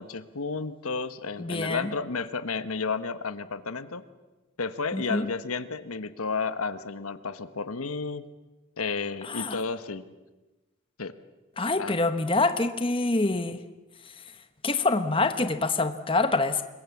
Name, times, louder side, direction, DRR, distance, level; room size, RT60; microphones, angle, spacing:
voice 1, 0.0-4.0 4.6-8.2 8.8-10.0 11.0-11.1 11.8-12.0, left 4 dB, 85° left, 11 dB, 1.2 m, -32 dB
voice 2, 1.4-1.9 4.9-5.3 9.2-9.6 11.6-13.6 14.6-16.6, left 3 dB, 25° left, 9 dB, 1.0 m, -26 dB
26.5 x 22.5 x 7.2 m, 1.1 s
head